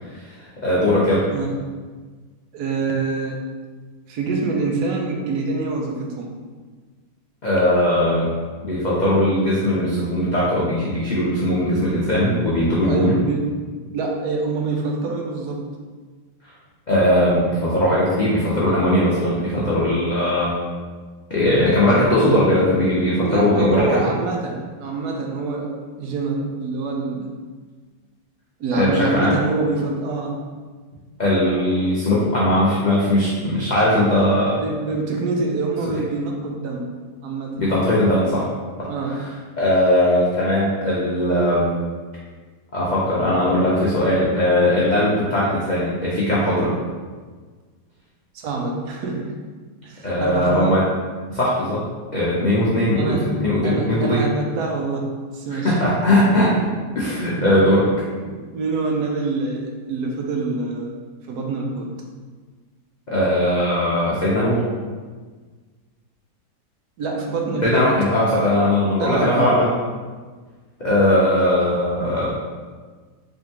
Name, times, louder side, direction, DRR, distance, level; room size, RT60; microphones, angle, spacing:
voice 1, 0.6-1.3 7.4-8.3 8.6-13.1 16.9-20.5 21.3-23.9 28.7-29.3 31.2-34.6 37.6-38.4 38.8-38.9 39.6-41.7 42.7-46.7 50.0-50.8 51.3-51.8 52.1-54.2 55.5-56.7 56.9-57.9 63.1-64.6 67.6-69.7 70.8-72.4, left 1 dB, 75° left, -7 dB, 0.4 m, -19 dB
voice 2, 2.5-3.4 4.1-6.3 12.8-13.6 13.9-15.7 23.2-27.3 28.6-30.4 34.6-36.9 37.2-37.6 38.9-39.2 48.3-49.3 49.8-50.8 53.0-55.8 57.4-57.5 58.2-60.9 61.3-61.9 67.0-67.9 69.0-69.5, right 3 dB, 75° right, 1 dB, 1.1 m, -25 dB
3.6 x 3.4 x 2.8 m, 1.4 s
omnidirectional pair, 1.8 m